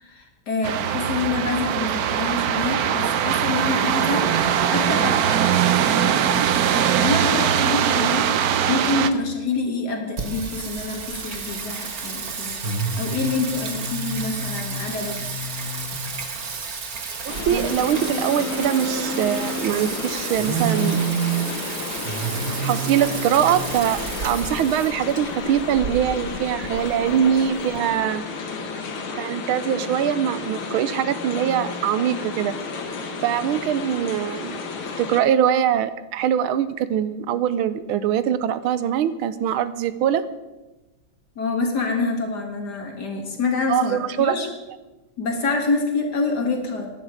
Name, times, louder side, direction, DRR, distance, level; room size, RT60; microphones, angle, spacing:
voice 1, 0.0-5.4 5.8-8.3 8.7-15.2 41.4-44.5 45.2-46.9, left 3 dB, 50° left, 3 dB, 2.4 m, -27 dB
sound 1, 0.6-9.1, right 9 dB, 65° right, 0.9 m, -21 dB
Singing, 10.2-27.8, right 4 dB, 45° right, 1.7 m, -29 dB
voice 2, 17.2-21.1 22.6-28.2 29.2-32.5 33.2-34.6 35.0-40.2 43.7-44.3, right 9 dB, 80° right, 14 dB, 1.5 m, -22 dB
sound 2, 17.3-35.2, left 4 dB, 75° left, 2.3 m, -32 dB
16.0 x 11.0 x 5.0 m, 1.1 s
omnidirectional pair, 2.3 m